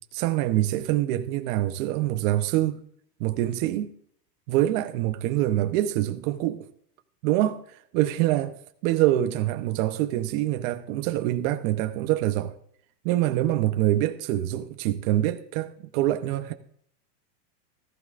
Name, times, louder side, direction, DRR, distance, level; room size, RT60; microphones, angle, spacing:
voice 1, 0.1-2.8 3.2-4.0 4.5-6.7 7.2-8.5 8.8-12.6 13.0-16.5, right 14 dB, 55° right, 1.0 m, -25 dB
15.0 x 15.0 x 2.5 m
supercardioid pair, 135°, 49 cm